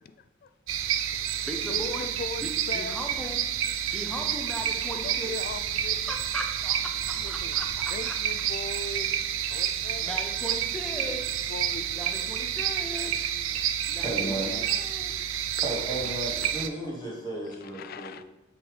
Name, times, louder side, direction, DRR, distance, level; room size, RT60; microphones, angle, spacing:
voice 1, 0.0-0.5 1.1-1.2 1.6-3.0 4.8-6.2 7.1-7.5 7.9-10.2 11.0-11.2 11.5-12.3 12.9-13.2 13.5-13.6 14.2-14.7 15.2-15.6 16.4-16.6 17.6-18.2, left 4 dB, 50° left, 12 dB, 0.3 m, -41 dB
sound 1, 0.7-16.7, right 10 dB, 85° right, 0.4 m, -29 dB
voice 2, 1.4-2.1 2.4-3.4 3.9-5.3 6.1-8.2 10.0-11.4 11.9-13.4 13.9-15.3, equal, 5° left, 2 dB, 0.7 m, -38 dB
sound 2, 1.8-1.9 3.1-3.3 4.4-6.3 7.0-8.7, equal, 90° left, 1.3 m, -51 dB
voice 3, 14.0-14.5 15.6-18.1, right 1 dB, 20° left, -4 dB, 1.5 m, -33 dB
6.7 x 3.4 x 5.3 m, 1.0 s
head